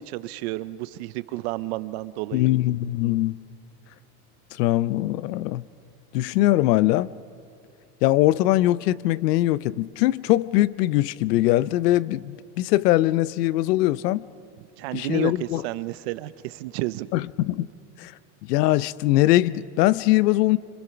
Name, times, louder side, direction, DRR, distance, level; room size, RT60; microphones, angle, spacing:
voice 1, 0.0-2.5 14.6-17.1, right 17 dB, 45° right, 0.5 m, -31 dB
voice 2, 2.3-3.4 4.6-5.6 6.1-7.1 8.0-14.2 14.9-15.6 17.1-17.7 18.0-18.1 18.5-20.6, left 16 dB, 85° left, 0.7 m, -21 dB
26.5 x 25.5 x 5.8 m
supercardioid pair, 170°, 47 cm